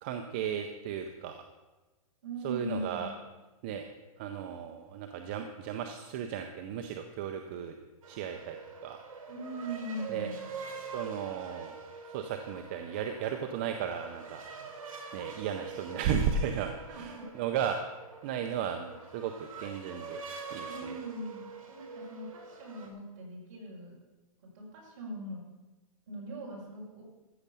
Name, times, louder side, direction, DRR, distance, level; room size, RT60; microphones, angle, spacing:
voice 1, 0.0-1.4 2.4-3.1 3.6-3.8 4.2-7.7 8.1-8.6 8.8-9.0 10.1-10.3 10.9-11.8 12.1-14.4 15.1-17.8 18.2-20.2 20.5-20.9, right 7 dB, 15° right, 5 dB, 0.4 m, -35 dB
voice 2, 2.2-3.2 9.3-10.5 16.7-17.3 20.7-24.0 24.5-25.4 26.1-27.0, right 1 dB, 35° right, -4 dB, 4.9 m, -40 dB
sound 1, 8.0-22.9, right 5 dB, 60° right, 3.5 m, -45 dB
14.0 x 7.3 x 6.7 m, 1.1 s
hypercardioid pair, 175°, 19 cm